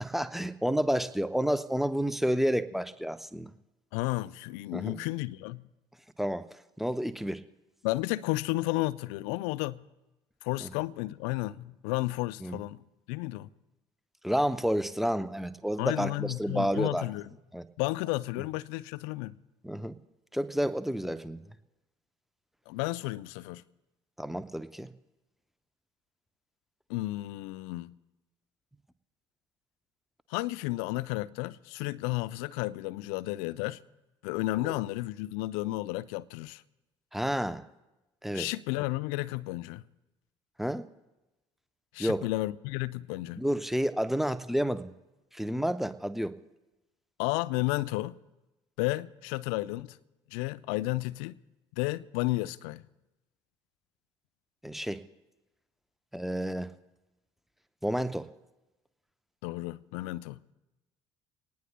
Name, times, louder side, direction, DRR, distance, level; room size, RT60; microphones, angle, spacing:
voice 1, 0.0-3.5 4.7-5.0 6.2-6.4 6.8-7.4 10.6-10.7 12.4-12.6 14.2-17.1 17.5-17.7 19.6-20.0 20.3-21.4 24.2-24.9 37.1-37.6 38.2-38.5 40.6-40.9 42.0-42.3 43.4-44.9 45.3-46.4 54.6-55.0 56.1-56.7 57.8-58.3, equal, ahead, 0.6 m, -30 dB
voice 2, 3.9-5.7 7.8-9.8 10.4-13.5 15.8-17.3 17.8-19.4 22.7-23.6 26.9-27.9 30.3-33.8 34.2-36.6 38.3-39.8 41.9-43.4 47.2-48.2 48.8-50.0 50.3-51.3 51.7-52.8 59.4-60.4, left 19 dB, 65° left, 0.5 m, -32 dB
24.0 x 18.5 x 2.2 m
figure-of-eight pair, 55°, 15 cm